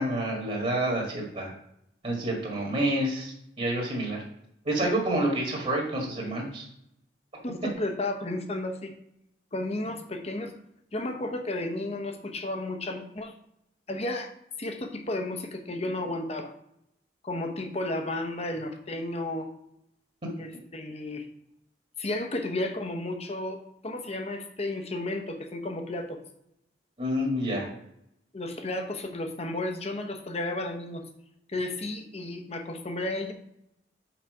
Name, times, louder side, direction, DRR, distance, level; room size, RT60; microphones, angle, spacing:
voice 1, 0.0-1.5 2.0-4.2 4.6-6.6 27.0-27.7, right 1 dB, 40° right, -1 dB, 1.7 m, -28 dB
voice 2, 7.4-8.9 9.5-10.5 10.9-13.3 13.9-14.3 14.6-16.5 17.2-19.5 20.4-21.3 22.0-26.2 28.3-31.0 31.5-33.3, left 2 dB, 35° left, 5 dB, 1.0 m, -33 dB
6.1 x 5.6 x 4.8 m, 0.77 s
head